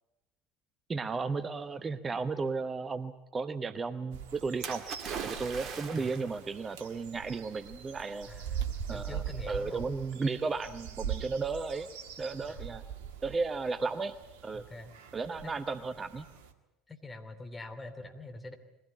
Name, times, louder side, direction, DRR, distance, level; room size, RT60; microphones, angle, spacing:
voice 1, 0.9-4.8 5.2-8.3 8.9-11.9 12.2-12.8 13.2-14.1 14.4-14.6 15.1-16.3, right 4 dB, 25° right, 11 dB, 0.9 m, -34 dB
sound 1, 4.1-16.5, right 8 dB, 70° right, 1.6 m, -42 dB
Splash splatter, 4.6-6.4 7.4-7.5, right 6 dB, 45° right, 2.0 m, -40 dB
voice 2, 8.3-9.9 12.5-12.8 14.5-15.0 15.4-15.5 16.9-18.6, left 2 dB, 20° left, 6 dB, 3.1 m, -45 dB
21.5 x 16.5 x 9.6 m, 0.96 s
figure-of-eight pair, 65°, 0 cm